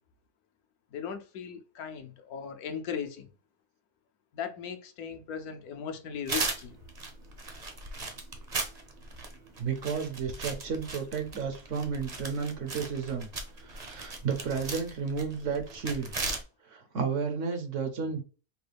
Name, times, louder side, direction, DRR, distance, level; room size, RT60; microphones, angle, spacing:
voice 1, 0.9-3.3 4.3-6.8, left 7 dB, 75° left, 1.1 m, -38 dB
sound 1, 6.3-16.4, right 3 dB, 40° right, 0.6 m, -38 dB
voice 2, 9.6-13.3 13.6-16.1 16.7-18.2, right 6 dB, 60° right, 0.9 m, -32 dB
5.3 x 2.2 x 3.3 m
omnidirectional pair, 1.7 m